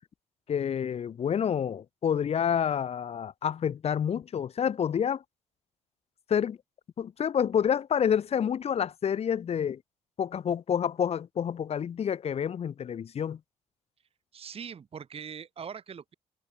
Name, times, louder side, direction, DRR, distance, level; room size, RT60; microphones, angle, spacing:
voice 1, 0.5-5.2 6.3-6.6 7.0-9.8 10.2-13.4, left 8 dB, 45° left, 0.6 m, -28 dB
voice 2, 14.3-16.1, right 7 dB, 40° right, 1.0 m, -41 dB
supercardioid pair, 60°, 15 cm